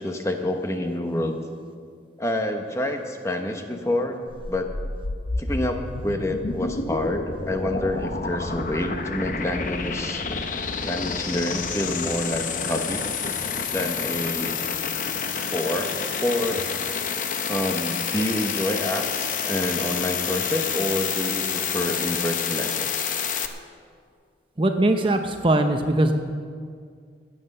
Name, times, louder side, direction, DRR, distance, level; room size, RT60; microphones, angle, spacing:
voice 1, 0.0-1.4 2.2-4.7 5.4-10.2 10.8-13.0 13.7-14.6 15.5-15.9 16.2-16.6 17.5-23.1, left 1 dB, 15° left, 4 dB, 1.0 m, -28 dB
sound 1, 4.3-23.5, left 5 dB, 45° left, 0.8 m, -29 dB
voice 2, 24.6-26.1, right 1 dB, 30° right, 6 dB, 0.7 m, -21 dB
15.5 x 9.7 x 6.6 m, 2.1 s
head